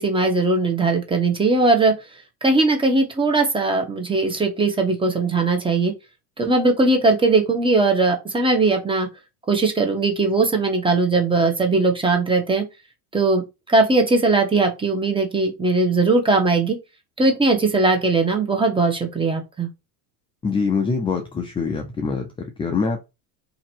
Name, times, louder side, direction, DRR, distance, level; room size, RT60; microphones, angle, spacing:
voice 1, 0.0-1.9 2.4-5.9 6.4-9.1 9.5-12.6 13.1-13.4 13.7-16.8 17.2-19.7, right 3 dB, 10° right, 1.0 m, -19 dB
voice 2, 20.4-23.0, left 5 dB, 15° left, 0.3 m, -24 dB
2.8 x 2.7 x 4.4 m
supercardioid pair, 125°, 47 cm